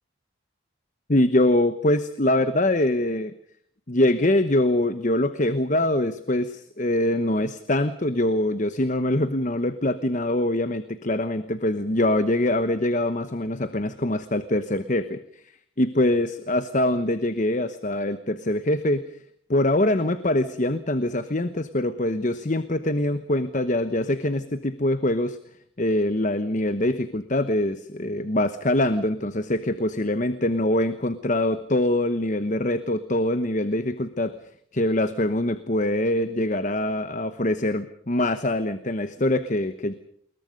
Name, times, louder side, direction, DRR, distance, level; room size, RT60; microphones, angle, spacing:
voice 1, 1.1-3.3 3.9-15.2 15.8-19.0 19.5-25.4 25.8-34.4 34.7-40.0, left 1 dB, 40° left, 11 dB, 1.0 m, -24 dB
28.5 x 22.0 x 5.3 m, 0.64 s
head